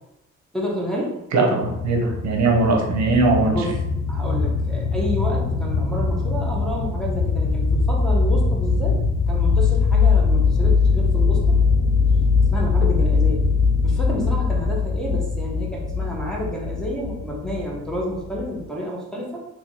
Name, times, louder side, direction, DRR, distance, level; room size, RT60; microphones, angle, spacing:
voice 1, 0.5-1.2 3.3-3.8 4.1-9.0 9.3-11.5 12.5-13.4 13.8-19.5, equal, ahead, -4 dB, 1.1 m, -30 dB
voice 2, 1.3-3.6, right 3 dB, 65° right, 1 dB, 0.8 m, -20 dB
sound 1, 1.6-18.6, left 4 dB, 90° left, 0.8 m, -21 dB
3.0 x 2.8 x 3.8 m, 0.89 s
cardioid pair, 90°, 30 cm